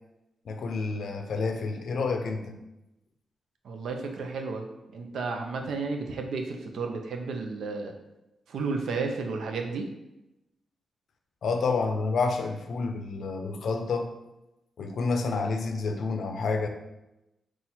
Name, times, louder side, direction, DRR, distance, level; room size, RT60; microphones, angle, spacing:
voice 1, 0.5-2.6 11.4-14.1 14.8-16.7, left 4 dB, 75° left, 5 dB, 0.5 m, -29 dB
voice 2, 3.6-4.7 4.9-7.9 8.5-9.9, right 4 dB, 80° right, 4 dB, 0.6 m, -32 dB
4.0 x 2.4 x 4.3 m, 0.94 s
cardioid pair, 75°, 0 cm